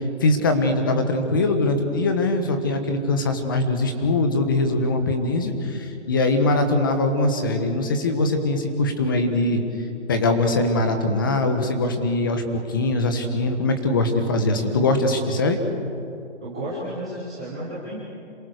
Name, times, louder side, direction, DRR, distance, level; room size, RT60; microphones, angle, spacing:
voice 1, 0.2-9.6 10.1-15.6, left 2 dB, 20° left, 7 dB, 1.3 m, -22 dB
voice 2, 16.4-18.0, right 1 dB, 5° right, -9 dB, 0.8 m, -32 dB
27.5 x 23.0 x 6.6 m, 2.7 s
hypercardioid pair, 175°, 36 cm